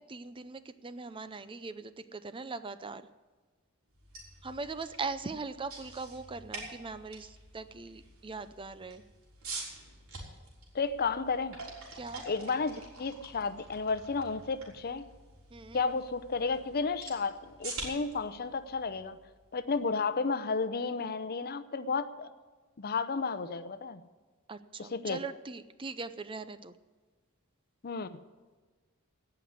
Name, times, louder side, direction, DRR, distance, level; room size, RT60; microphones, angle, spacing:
voice 1, 0.1-3.0 4.4-9.0 11.9-12.2 15.5-15.8 24.5-26.7, right 4 dB, 25° right, 12 dB, 0.5 m, -41 dB
sound 1, 3.9-19.9, right 2 dB, 80° right, 3.9 m, -47 dB
voice 2, 10.7-11.6 12.3-15.1 15.7-19.2 19.5-22.3 22.8-24.0 24.8-25.2 27.8-28.2, left 4 dB, 45° left, 13 dB, 0.7 m, -32 dB
17.5 x 5.9 x 9.3 m, 1.4 s
head